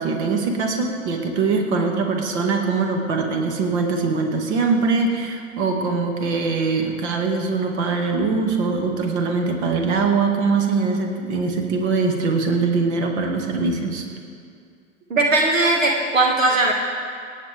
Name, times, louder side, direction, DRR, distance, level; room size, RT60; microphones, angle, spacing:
voice 1, 0.0-14.0, right 4 dB, 55° right, 2 dB, 2.1 m, -22 dB
voice 2, 15.1-16.7, right 2 dB, 80° right, -1 dB, 2.0 m, -18 dB
27.0 x 9.4 x 3.5 m, 2.2 s
figure-of-eight pair, 95°, 39 cm